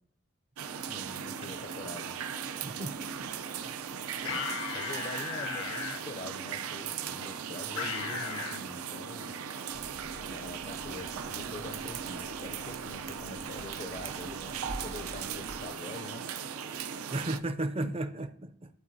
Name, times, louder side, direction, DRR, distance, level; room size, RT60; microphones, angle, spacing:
sound 1, 0.6-17.4, right 7 dB, 90° right, 0.5 m, -38 dB
voice 1, 0.9-2.2 4.0-4.4 4.7-9.3 10.3-16.3 16.7-17.1 17.8-18.0, left 2 dB, 35° left, 0.5 m, -45 dB
voice 2, 2.6-3.3 3.7-3.8 17.1-18.7, right 2 dB, 25° right, 0.4 m, -35 dB
sound 2, 4.2-6.0 7.8-8.6, left 4 dB, 80° left, 1.1 m, -35 dB
Cat, 9.7-15.6, right 2 dB, 60° right, 0.9 m, -47 dB
13.0 x 4.5 x 2.6 m
head